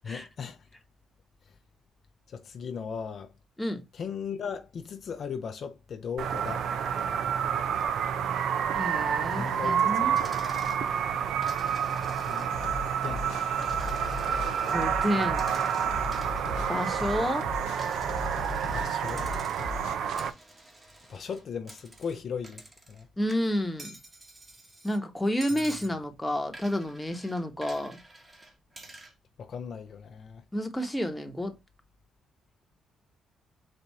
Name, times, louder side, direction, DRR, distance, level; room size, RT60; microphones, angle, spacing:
voice 1, 0.0-0.6 2.3-3.3 3.9-6.6 9.3-10.3 12.3-12.5 12.9-13.3 14.1-14.5 16.9-17.0 18.7-19.3 21.1-22.6 22.9-23.1 29.4-30.4, left 6 dB, 55° left, 0.5 m, -37 dB
sound 1, 6.2-20.3, right 8 dB, 70° right, 0.5 m, -29 dB
voice 2, 8.7-10.2 14.6-15.4 16.7-17.5 23.2-24.0 24.8-28.0 30.5-31.6, equal, 10° left, 1.0 m, -30 dB
Coin (dropping), 10.2-10.8 11.4-12.7 13.1-14.8 15.3-17.4 17.8-18.8 19.1-19.8 20.2-23.0 23.3-25.0 25.4-25.9 26.5-29.1, right 1 dB, 20° right, 1.2 m, -49 dB
sound 2, 12.5-20.0, left 3 dB, 90° left, 0.7 m, -38 dB
4.2 x 2.6 x 4.7 m
cardioid pair, 90°, 0 cm